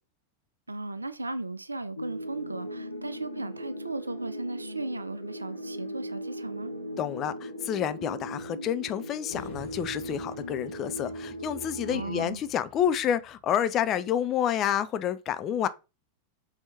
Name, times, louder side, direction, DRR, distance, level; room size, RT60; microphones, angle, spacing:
voice 1, 0.7-6.7 11.9-12.4, right 2 dB, 80° right, 0.4 m, -36 dB
sound 1, 2.0-12.3, equal, 80° left, 0.5 m, -38 dB
voice 2, 7.0-15.7, left 10 dB, 30° left, 0.4 m, -29 dB
sound 2, 9.3-13.8, left 2 dB, 50° left, 1.2 m, -49 dB
4.3 x 2.8 x 3.3 m
figure-of-eight pair, 90°, 0 cm